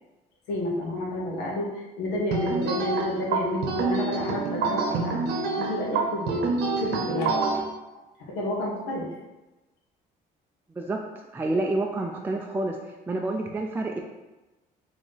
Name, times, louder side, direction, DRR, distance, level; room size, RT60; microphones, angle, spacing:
voice 1, 0.5-7.5 7.9-9.1, left 1 dB, 85° left, -3 dB, 1.1 m, -30 dB
sound 1, 2.3-7.6, right 4 dB, 80° right, 0.8 m, -27 dB
voice 2, 11.3-12.8 13.1-14.0, right 2 dB, 10° right, 1 dB, 0.3 m, -28 dB
4.2 x 3.0 x 3.2 m, 1.1 s
cardioid pair, 110°, 17 cm